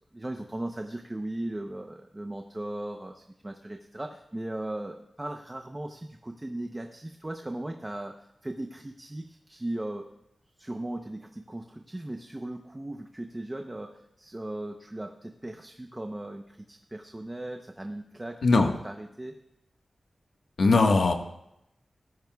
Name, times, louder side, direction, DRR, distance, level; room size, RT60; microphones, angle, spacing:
voice 1, 0.1-10.1 10.6-18.4 18.8-19.3, right 1 dB, 20° right, 4 dB, 0.8 m, -37 dB
voice 2, 18.4-18.7 20.6-21.1, left 3 dB, 80° left, 3 dB, 1.4 m, -20 dB
19.0 x 14.0 x 2.3 m, 0.82 s
wide cardioid pair, 125°, 0 cm